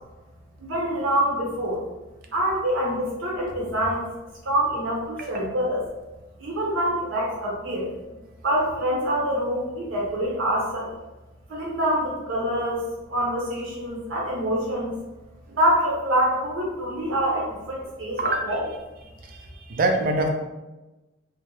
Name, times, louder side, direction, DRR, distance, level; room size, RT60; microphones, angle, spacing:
voice 1, 0.6-1.8 2.3-4.0 4.4-5.8 6.4-7.9 8.4-10.9 11.5-12.8 13.1-14.9 15.5-18.7, equal, 80° right, -4 dB, 0.7 m, -25 dB
voice 2, 19.3-20.3, right 2 dB, 45° right, 2 dB, 0.4 m, -24 dB
2.4 x 2.1 x 3.1 m, 1.1 s
head